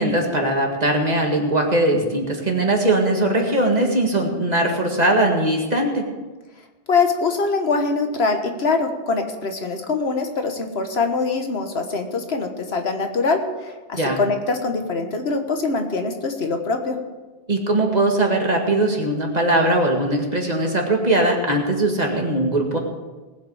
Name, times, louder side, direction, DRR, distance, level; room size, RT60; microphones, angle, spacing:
voice 1, 0.0-6.0 13.9-14.2 17.5-22.8, right 1 dB, 40° right, 1 dB, 2.0 m, -20 dB
voice 2, 6.9-17.0, left 4 dB, 85° left, 5 dB, 1.6 m, -23 dB
19.0 x 8.2 x 4.9 m, 1.2 s
omnidirectional pair, 1.0 m